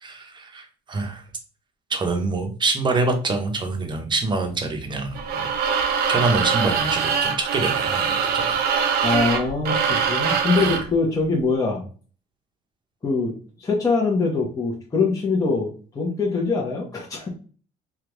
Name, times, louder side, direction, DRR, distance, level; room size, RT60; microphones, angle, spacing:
voice 1, 0.0-1.2 1.9-5.5 6.1-8.6 9.0-9.1 9.8-9.9 10.5-10.8, right 3 dB, 25° right, 4 dB, 0.8 m, -26 dB
sound 1, 5.1-10.9, right 6 dB, 70° right, 0.6 m, -23 dB
voice 2, 9.0-11.8 13.0-13.3 13.6-17.3, left 4 dB, 20° left, -3 dB, 0.8 m, -23 dB
3.5 x 2.3 x 3.0 m, 0.39 s
cardioid pair, 110°, 17 cm